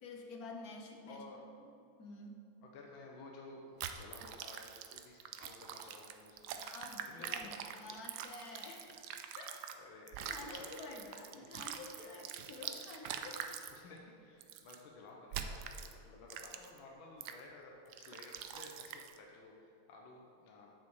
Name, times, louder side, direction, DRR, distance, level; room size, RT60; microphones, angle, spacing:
voice 1, 0.0-1.3 1.6-1.7 2.0-2.5 6.6-8.9 9.4-9.5 10.3-13.5, left 2 dB, 55° left, 1 dB, 1.3 m, -49 dB
voice 2, 1.1-1.4 2.6-6.6 7.0-8.0 8.9-9.0 9.8-11.6 13.7-20.7, left 3 dB, 70° left, -1 dB, 1.7 m, -55 dB
sound 1, 3.8-9.8 10.1-13.8 14.4-14.8 15.3-15.9 16.3-16.8 17.2-17.4 17.9-19.2, right 8 dB, 75° right, 0.9 m, -44 dB
8.2 x 7.6 x 4.8 m, 2.5 s
omnidirectional pair, 2.3 m